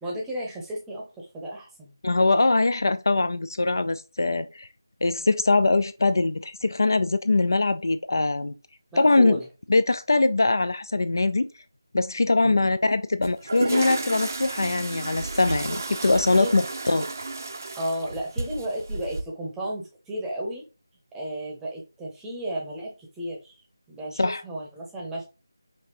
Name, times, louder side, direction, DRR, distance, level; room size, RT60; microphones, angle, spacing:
voice 1, 0.0-1.9 8.9-9.4 12.4-12.7 16.4-16.5 17.8-20.6 21.1-23.6 23.9-25.2, right 1 dB, 5° right, 0.7 m, -33 dB
voice 2, 2.0-4.7 5.0-8.5 9.0-9.4 9.7-11.5 11.9-17.1 24.2-24.4, left 2 dB, 60° left, 0.3 m, -22 dB
sound 1, 13.2-19.2, right 3 dB, 45° right, 0.5 m, -32 dB
5.0 x 2.7 x 2.9 m
figure-of-eight pair, 165°, 2 cm